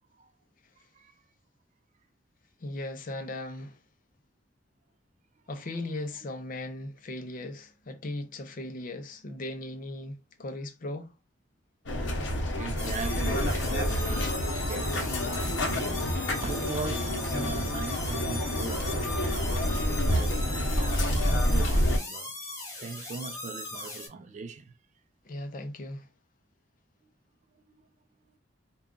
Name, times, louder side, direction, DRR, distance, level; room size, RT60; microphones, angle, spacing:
voice 1, 2.6-3.8 5.5-11.1 25.2-26.1, left 1 dB, 45° left, 0.5 m, -38 dB
sound 1, 11.9-22.0, left 1 dB, 80° left, 0.8 m, -28 dB
voice 2, 12.5-22.3 22.8-24.7, right 4 dB, 40° right, 0.3 m, -40 dB
sound 2, 12.8-24.1, left 2 dB, 15° left, 1.1 m, -39 dB
2.3 x 2.3 x 3.6 m
head